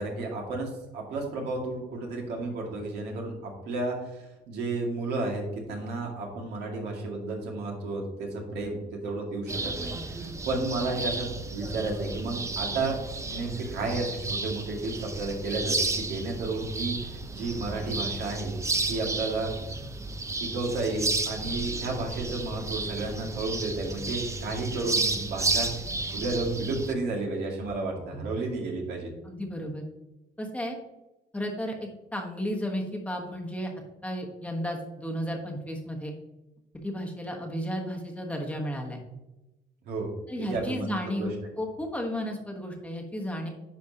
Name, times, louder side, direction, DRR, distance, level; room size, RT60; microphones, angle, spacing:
voice 1, 0.0-9.9 10.2-13.0 13.2-17.0 17.3-18.6 18.9-19.5 20.4-25.7 26.1-29.1 39.9-40.1 40.5-41.3, right 3 dB, 75° right, 0 dB, 2.2 m, -32 dB
sound 1, 9.5-26.9, right 3 dB, 15° right, 0.7 m, -32 dB
voice 2, 29.2-29.8 30.4-30.8 31.3-33.7 34.0-36.1 36.8-39.0 40.3-43.5, equal, 10° left, 0 dB, 1.2 m, -33 dB
9.9 x 5.3 x 2.9 m, 1.0 s
cardioid pair, 110°, 17 cm